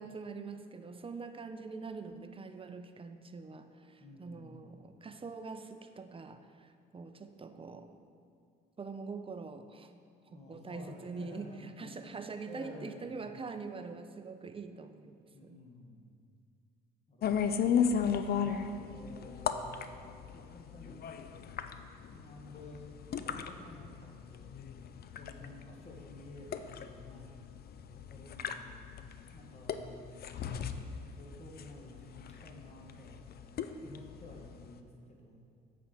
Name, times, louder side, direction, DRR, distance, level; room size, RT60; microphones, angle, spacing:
voice 1, 0.0-8.0 8.8-9.9 10.3-15.2 15.4-15.6, right 4 dB, 25° right, 8 dB, 0.6 m, -44 dB
voice 2, 4.0-4.6 10.3-13.1 15.3-16.1 17.1-17.8 18.4-19.9 20.3-21.1 22.1-24.5 25.2-27.4 27.9-28.8 29.3-30.0 30.3-33.3 33.8-35.4, left 2 dB, 30° left, -1 dB, 1.7 m, -52 dB
sound 1, 17.2-34.8, left 7 dB, 50° left, 0.5 m, -36 dB
8.3 x 4.4 x 6.0 m, 2.3 s
supercardioid pair, 65°, 21 cm